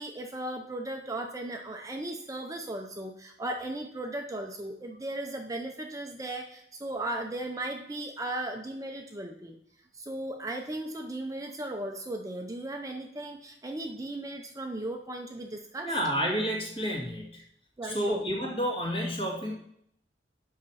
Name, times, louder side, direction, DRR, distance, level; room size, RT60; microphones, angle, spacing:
voice 1, 0.0-9.6 9.9-15.9 17.8-18.2, right 1 dB, 20° right, 3 dB, 0.7 m, -36 dB
voice 2, 15.8-17.4 17.8-19.6, equal, 30° left, -1 dB, 2.3 m, -30 dB
7.8 x 5.8 x 5.7 m, 0.70 s
head